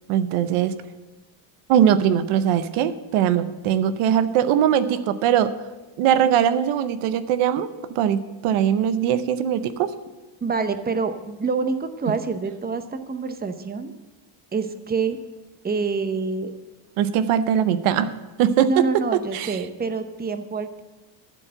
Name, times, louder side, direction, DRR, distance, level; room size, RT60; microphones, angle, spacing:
voice 1, 0.1-0.7 1.7-5.5 6.0-7.7 7.9-10.0 17.0-18.1 18.4-19.6, right 9 dB, 90° right, 13 dB, 0.8 m, -21 dB
voice 2, 10.4-13.9 14.5-15.2 15.6-16.5 18.6-20.8, right 4 dB, 20° right, 10 dB, 0.8 m, -26 dB
14.0 x 4.6 x 7.7 m, 1.2 s
cardioid pair, 95°, 49 cm